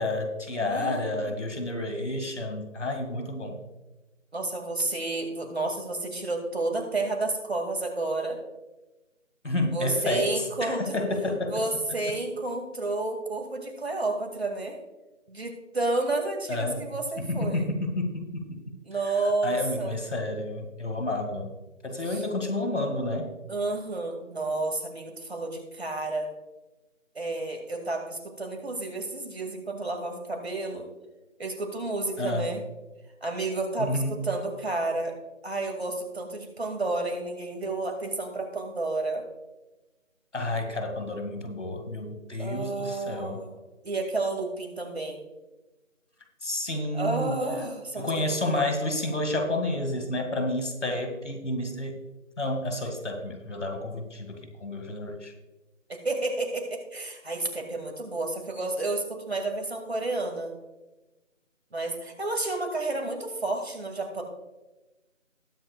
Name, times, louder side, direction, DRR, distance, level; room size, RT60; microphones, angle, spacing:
voice 1, 0.0-3.6 9.4-11.6 16.5-16.8 17.2-18.7 19.4-21.5 21.8-23.3 32.2-32.5 33.8-34.2 40.3-43.4 46.4-47.4 48.0-52.0 52.4-55.3, left 1 dB, 65° left, 4 dB, 2.2 m, -30 dB
voice 2, 0.6-1.3 4.3-8.4 9.7-11.0 11.5-14.8 15.3-17.7 18.9-20.0 22.1-22.2 23.5-26.3 27.1-30.9 31.4-32.6 33.2-35.1 35.4-39.2 42.4-43.5 43.8-45.2 46.9-48.6 55.9-60.5 61.7-64.2, right 2 dB, 50° right, 4 dB, 2.3 m, -31 dB
19.5 x 7.6 x 2.3 m, 1.1 s
figure-of-eight pair, 175°, 39 cm